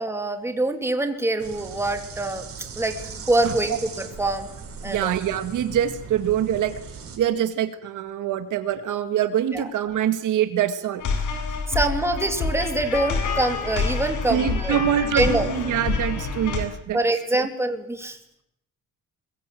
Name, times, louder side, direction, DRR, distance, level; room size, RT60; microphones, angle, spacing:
voice 1, 0.0-2.4 2.8-4.5 4.8-5.2 9.5-9.7 11.7-14.8 15.1-15.5 16.9-18.2, right 2 dB, 10° right, 5 dB, 2.7 m, -25 dB
sound 1, 1.4-7.2, right 5 dB, 45° right, 5.8 m, -39 dB
voice 2, 3.4-3.8 4.9-6.8 7.2-11.0 11.8-11.9 12.2-12.3 14.3-17.5, right 10 dB, 70° right, 9 dB, 2.0 m, -25 dB
sound 2, 11.0-16.6, left 4 dB, 65° left, 7.2 m, -27 dB
21.5 x 21.5 x 9.2 m, 0.76 s
cardioid pair, 155°, 32 cm